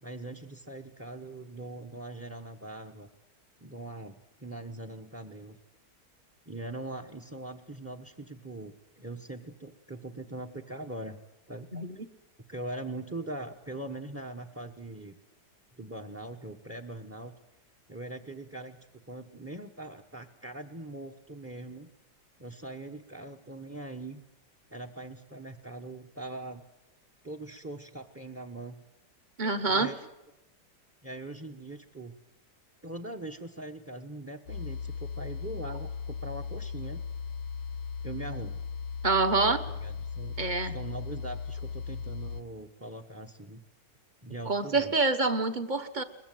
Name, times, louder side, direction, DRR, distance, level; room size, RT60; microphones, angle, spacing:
voice 1, 0.0-3.1 3.6-5.6 6.5-11.2 11.5-11.7 12.5-15.2 15.8-17.3 17.9-21.9 22.4-24.2 24.7-26.6 27.2-28.8 29.7-30.1 31.0-32.1 32.8-37.0 38.0-38.6 39.7-43.6 44.2-44.9, right 2 dB, 10° right, 7 dB, 0.9 m, -41 dB
voice 2, 29.4-29.9 39.0-39.6 40.4-40.7 44.5-46.0, right 3 dB, 30° right, 9 dB, 1.1 m, -26 dB
sound 1, 34.5-42.4, left 6 dB, 70° left, 1.6 m, -37 dB
22.5 x 21.0 x 9.2 m, 0.95 s
omnidirectional pair, 1.9 m